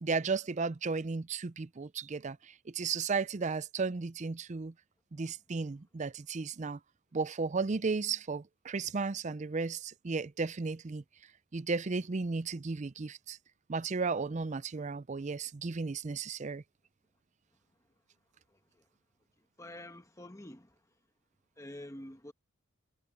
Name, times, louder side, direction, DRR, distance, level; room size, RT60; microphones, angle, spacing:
voice 1, 0.0-4.7 5.1-6.8 7.1-11.0 11.5-13.4 13.7-16.6, right 4 dB, 35° right, 0.5 m, -34 dB
voice 2, 18.5-18.9 19.6-20.8 21.6-22.3, left 1 dB, 15° left, 1.2 m, -48 dB
head